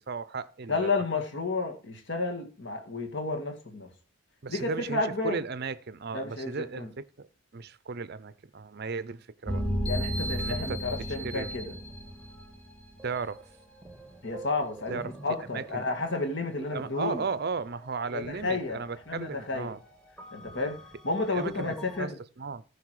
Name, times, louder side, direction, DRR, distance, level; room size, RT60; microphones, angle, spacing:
voice 1, 0.0-1.0 4.4-9.6 10.4-10.8 11.2-11.5 13.0-13.4 14.9-15.1 15.5-15.8 16.7-19.8 21.3-22.1 22.4-22.6, right 4 dB, 50° right, 0.6 m, -35 dB
voice 2, 0.7-3.9 4.5-5.4 6.1-6.9 9.8-11.7 14.2-17.2 18.1-19.7 20.3-22.2, left 3 dB, 55° left, 2.1 m, -32 dB
sound 1, 9.5-13.4 13.8-17.0 17.4-17.5 18.0-19.0 19.3-19.5 20.2-22.0, equal, 5° left, 1.6 m, -36 dB
14.5 x 5.4 x 4.8 m
head